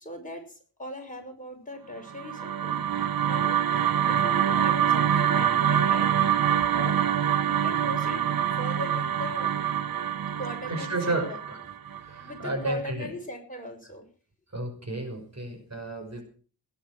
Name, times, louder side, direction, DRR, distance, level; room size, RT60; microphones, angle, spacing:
voice 1, 0.0-7.0 7.4-8.3 8.5-9.6 10.4-11.4 12.2-14.1, left 1 dB, 20° left, 2 dB, 5.6 m, -40 dB
sound 1, 2.1-12.4, right 9 dB, 60° right, 0.7 m, -25 dB
voice 2, 10.7-11.6 12.0-13.1 14.5-16.2, right 2 dB, 40° right, 5 dB, 5.9 m, -32 dB
19.5 x 10.5 x 6.2 m, 0.41 s
wide cardioid pair, 105°, 39 cm